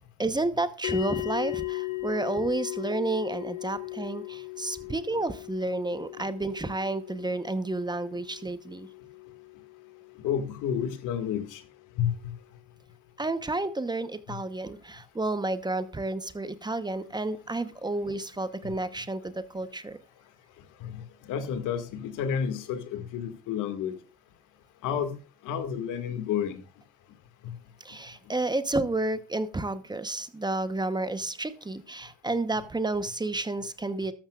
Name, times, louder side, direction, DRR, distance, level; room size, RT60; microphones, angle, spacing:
voice 1, 0.2-8.9 13.2-20.0 27.8-34.1, right 2 dB, 15° right, 12 dB, 1.0 m, -31 dB
sound 1, 0.8-11.4, left 21 dB, 80° left, 2.0 m, -38 dB
voice 2, 10.2-11.6 12.0-12.1 20.8-24.0 24.8-25.1 25.4-26.6 27.4-27.5, left 8 dB, 65° left, 8 dB, 2.0 m, -30 dB
13.0 x 13.0 x 2.4 m, 0.35 s
supercardioid pair, 85°, 33 cm